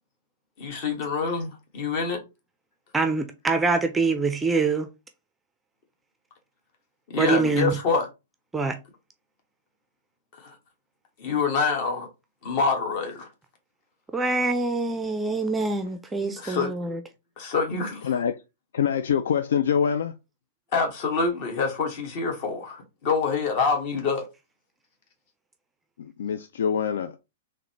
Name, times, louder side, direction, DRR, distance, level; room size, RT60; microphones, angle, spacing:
voice 1, 0.6-2.2 7.1-8.1 10.3-10.6 11.2-12.1 12.4-13.3 16.2-17.0 17.4-18.1 20.7-24.3, left 4 dB, 40° left, 1.4 m, -26 dB
voice 2, 2.9-4.9 7.2-7.7 8.5-8.8 14.1-17.0, right 3 dB, 10° right, 0.5 m, -25 dB
voice 3, 18.7-20.1 26.0-27.2, left 8 dB, 60° left, 0.3 m, -25 dB
3.9 x 3.2 x 3.0 m
figure-of-eight pair, 105°, 0 cm